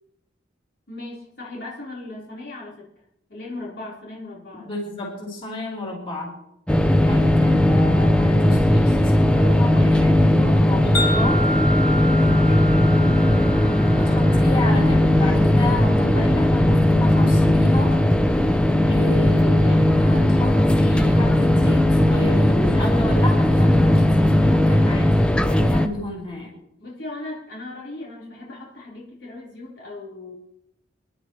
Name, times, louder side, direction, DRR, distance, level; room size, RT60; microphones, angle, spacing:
voice 1, 0.9-2.7 3.3-4.7 6.8-7.3 12.3-12.9 26.8-30.3, left 2 dB, 70° left, -6 dB, 4.5 m, -37 dB
voice 2, 4.6-6.3 7.0-11.4 13.9-17.9 18.9-26.5, left 1 dB, 30° left, -3 dB, 4.7 m, -31 dB
sound 1, 6.7-25.9, left 1 dB, 5° left, 0.7 m, -17 dB
Wind chime, 10.9-15.2, equal, 50° left, 3.7 m, -30 dB
27.0 x 12.0 x 3.3 m, 0.79 s
head